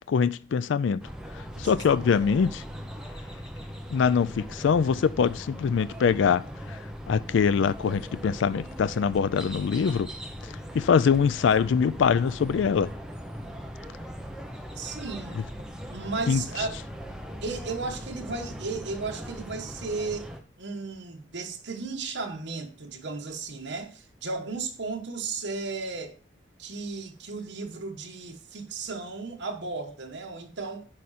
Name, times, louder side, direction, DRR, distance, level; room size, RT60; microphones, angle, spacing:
voice 1, 0.1-1.0 1.6-2.6 3.9-6.4 6.7-6.8 7.1-10.1 10.7-12.9 16.3-16.4, left 6 dB, 80° left, 0.3 m, -23 dB
sound 1, 1.0-20.4, equal, 5° right, 0.7 m, -40 dB
voice 2, 1.6-2.0 14.8-15.4 15.9-16.7 17.4-20.3 20.6-26.2 26.6-30.8, right 4 dB, 70° right, 1.1 m, -35 dB
9.5 x 4.9 x 4.2 m
head